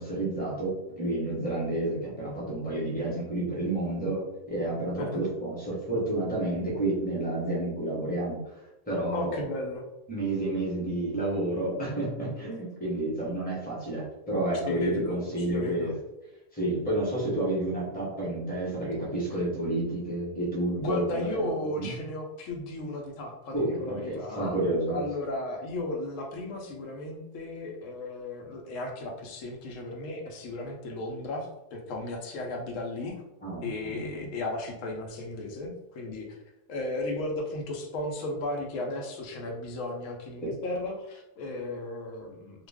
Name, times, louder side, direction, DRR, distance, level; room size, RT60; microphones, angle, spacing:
voice 1, 0.0-8.4 8.9-9.4 10.1-15.9 16.5-21.5 21.8-21.9 23.5-25.0 33.4-34.3, right 1 dB, 10° left, -5 dB, 0.8 m, -30 dB
voice 2, 9.1-9.8 14.7-15.2 15.5-15.9 20.8-33.2 33.6-36.4 36.7-42.7, left 2 dB, 90° left, 1 dB, 1.0 m, -35 dB
2.4 x 2.3 x 3.3 m, 0.95 s
omnidirectional pair, 1.3 m